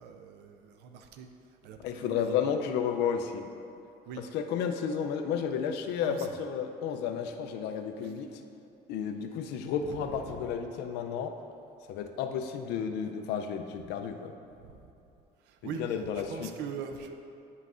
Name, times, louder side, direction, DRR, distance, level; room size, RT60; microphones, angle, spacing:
voice 1, 0.0-2.4 4.1-4.3 6.0-6.3 8.0-8.1 9.8-10.6 14.6-14.9 15.4-16.0 16.3-17.2, right 6 dB, 85° right, 6 dB, 0.5 m, -42 dB
voice 2, 1.8-3.5 4.3-8.3 8.9-11.3 11.9-14.3 15.6-16.5, left 7 dB, 90° left, 6 dB, 0.5 m, -32 dB
9.1 x 5.6 x 2.5 m, 2.7 s
cardioid pair, 110°, 17 cm